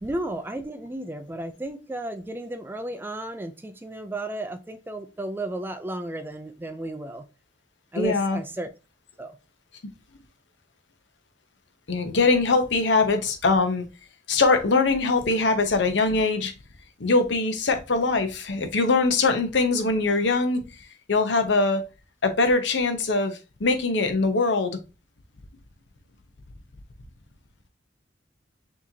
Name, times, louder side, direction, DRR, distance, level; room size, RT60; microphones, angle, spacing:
voice 1, 0.0-7.2 7.9-8.7 9.2-9.4, right 1 dB, 10° right, 0.4 m, -33 dB
voice 2, 7.9-8.4 11.9-13.8 14.3-16.5 17.0-20.6 21.1-21.8 22.2-24.8, left 3 dB, 80° left, 0.8 m, -22 dB
6.2 x 2.9 x 2.7 m
head